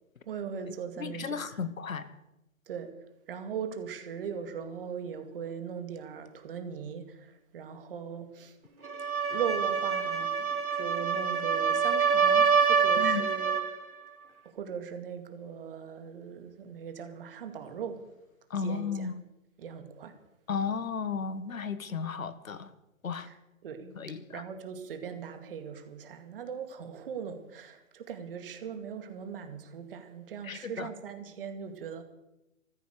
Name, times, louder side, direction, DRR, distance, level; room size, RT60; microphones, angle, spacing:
voice 1, 0.3-1.6 2.7-2.9 3.3-8.6 9.3-13.6 14.4-18.0 18.6-19.1 19.6-20.1 23.2-23.4 23.6-32.0, right 7 dB, 40° right, 7 dB, 2.3 m, -39 dB
voice 2, 1.0-2.1 13.0-13.2 18.5-19.1 20.5-22.7 23.0-23.3 24.0-24.4 30.4-30.9, left 5 dB, 70° left, 13 dB, 1.8 m, -34 dB
sound 1, 8.8-13.8, right 6 dB, 85° right, 4.2 m, -26 dB
14.5 x 14.5 x 6.6 m, 0.92 s
hypercardioid pair, 155°, 42 cm